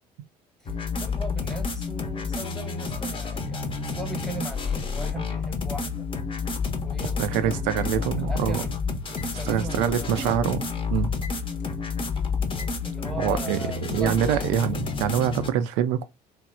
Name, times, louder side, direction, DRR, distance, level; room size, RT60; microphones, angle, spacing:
sound 1, 0.7-15.5, left 4 dB, 25° left, 0.6 m, -30 dB
voice 1, 1.0-6.1 6.8-8.7 9.1-10.4 12.8-14.7, right 2 dB, ahead, 0.9 m, -38 dB
voice 2, 7.2-8.6 9.5-10.7 10.9-11.1 13.2-13.6 13.9-16.0, right 9 dB, 60° right, 0.4 m, -25 dB
sound 2, 7.5-8.3 9.2-10.6 10.9-11.8 12.6-13.5, left 4 dB, 90° left, 0.5 m, -47 dB
3.0 x 2.1 x 2.4 m
figure-of-eight pair, 55°, 21 cm